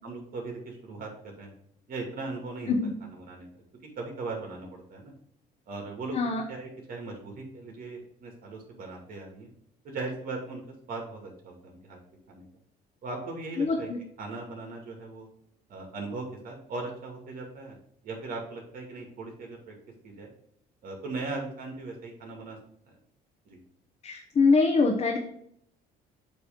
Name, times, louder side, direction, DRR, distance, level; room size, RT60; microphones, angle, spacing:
voice 1, 0.0-1.5 1.9-2.8 3.1-3.6 4.0-5.1 5.7-6.2 6.5-9.5 9.8-10.6 10.9-12.0 12.3-12.5 13.0-13.9 14.2-15.3 15.7-17.8 18.0-19.7 20.0-20.3 20.8-22.6 22.8-23.0 23.5-23.6, right 3 dB, 60° right, 1 dB, 2.3 m, -38 dB
voice 2, 13.6-14.0 24.0-25.2, left 4 dB, 40° left, 0 dB, 1.0 m, -24 dB
8.0 x 3.3 x 5.2 m, 0.69 s
cardioid pair, 110°, 17 cm